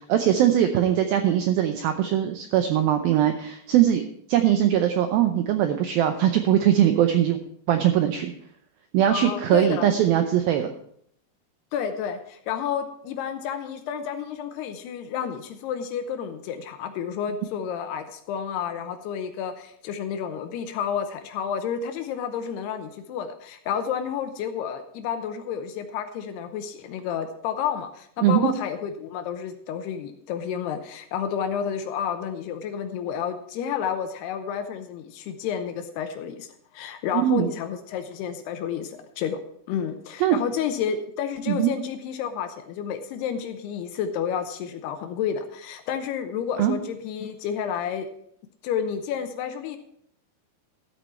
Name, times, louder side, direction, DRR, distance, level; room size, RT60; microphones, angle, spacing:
voice 1, 0.1-4.0 4.3-7.4 7.7-8.3 8.9-10.7 28.2-28.5 37.1-37.5 40.2-40.4 41.5-41.7 46.6-46.8, right 11 dB, 85° right, 7 dB, 2.1 m, -21 dB
voice 2, 9.1-9.9 11.7-39.4 39.7-48.1 48.6-49.8, left 8 dB, 80° left, 8 dB, 2.6 m, -30 dB
13.5 x 8.3 x 4.4 m, 0.67 s
omnidirectional pair, 5.1 m